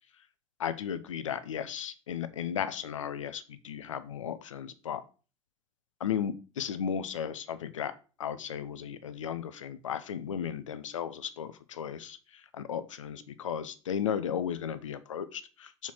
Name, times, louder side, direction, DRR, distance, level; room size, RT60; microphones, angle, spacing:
voice 1, 0.6-5.0 6.0-7.9 8.2-15.9, left 8 dB, 80° left, 13 dB, 0.6 m, -35 dB
5.6 x 4.4 x 4.4 m, 0.36 s
hypercardioid pair, 75°, 16 cm